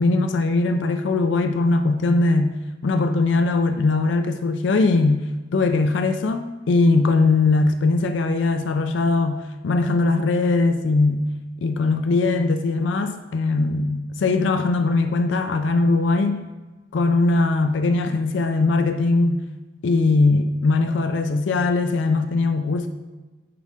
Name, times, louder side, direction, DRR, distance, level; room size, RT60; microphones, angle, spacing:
voice 1, 0.0-2.5 2.8-11.2 11.6-16.4 16.9-19.4 19.8-22.9, left 3 dB, 85° left, 0.4 m, -20 dB
9.4 x 3.7 x 3.6 m
head